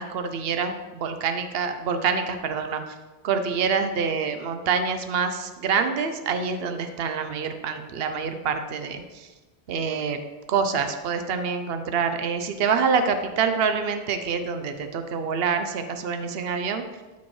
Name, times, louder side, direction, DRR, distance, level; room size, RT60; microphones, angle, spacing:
voice 1, 0.0-2.8 3.2-9.3 9.7-10.2 10.5-16.8, right 5 dB, 70° right, 7 dB, 0.9 m, -26 dB
12.5 x 5.7 x 3.2 m, 1.2 s
omnidirectional pair, 1.0 m